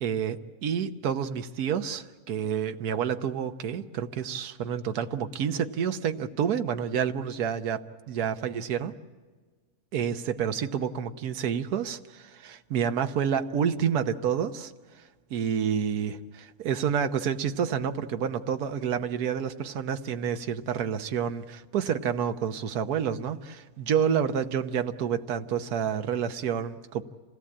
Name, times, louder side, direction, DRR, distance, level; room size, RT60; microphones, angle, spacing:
voice 1, 0.0-8.9 9.9-14.7 15.3-27.0, right 8 dB, 80° right, 8 dB, 1.4 m, -29 dB
27.0 x 17.5 x 8.7 m, 1.4 s
omnidirectional pair, 1.6 m